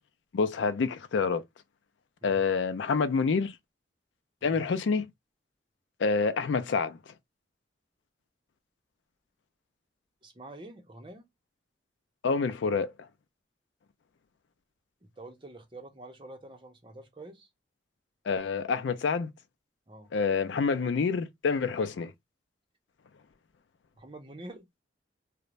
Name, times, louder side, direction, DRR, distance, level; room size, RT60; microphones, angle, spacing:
voice 1, 0.3-1.4 2.2-3.6 4.4-5.1 6.0-7.1 12.2-12.9 18.3-19.3 20.1-22.1, left 5 dB, 75° left, 0.4 m, -27 dB
voice 2, 10.2-11.3 15.0-17.5 19.9-20.1 24.0-24.7, right 2 dB, 30° right, 0.7 m, -47 dB
2.5 x 2.1 x 3.0 m
head